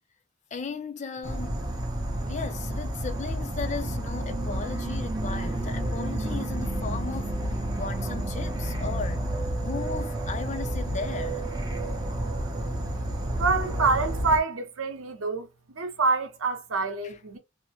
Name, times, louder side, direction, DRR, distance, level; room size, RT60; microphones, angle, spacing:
voice 1, 0.5-1.6 2.3-9.3 9.6-11.5 17.0-17.2, left 5 dB, 35° left, 0.4 m, -36 dB
Insect / Frog, 1.2-14.4, right 1 dB, 20° right, 0.6 m, -30 dB
voice 2, 13.4-17.4, right 4 dB, 90° right, 0.7 m, -26 dB
2.6 x 2.1 x 2.7 m
head